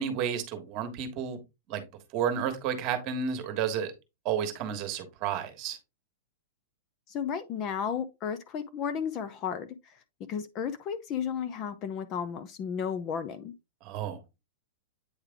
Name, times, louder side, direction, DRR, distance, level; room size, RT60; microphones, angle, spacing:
voice 1, 0.0-1.4 1.7-1.8 2.1-3.9 4.2-5.8 13.8-14.2, right 8 dB, 30° right, 1.4 m, -31 dB
voice 2, 7.1-10.0 10.3-13.5, left 7 dB, 25° left, 0.5 m, -33 dB
8.6 x 3.3 x 3.5 m
supercardioid pair, 170°, 0 cm